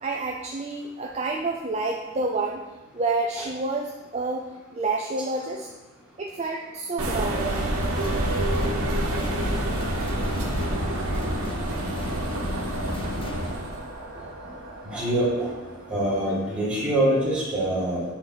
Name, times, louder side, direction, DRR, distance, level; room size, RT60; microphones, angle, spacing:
voice 1, 0.0-2.6 2.9-4.5 4.7-5.7 6.2-7.6, right 3 dB, 30° right, 0 dB, 0.4 m, -29 dB
sound 1, 6.2-16.9, right 2 dB, 55° right, 1.2 m, -42 dB
sound 2, 7.0-13.9, right 1 dB, 85° right, 1.2 m, -28 dB
sound 3, 7.7-13.5, left 1 dB, 25° left, 0.6 m, -33 dB
voice 2, 14.8-15.5 15.9-18.0, right 1 dB, 5° right, -8 dB, 2.1 m, -24 dB
8.4 x 4.7 x 3.9 m, 1.2 s
head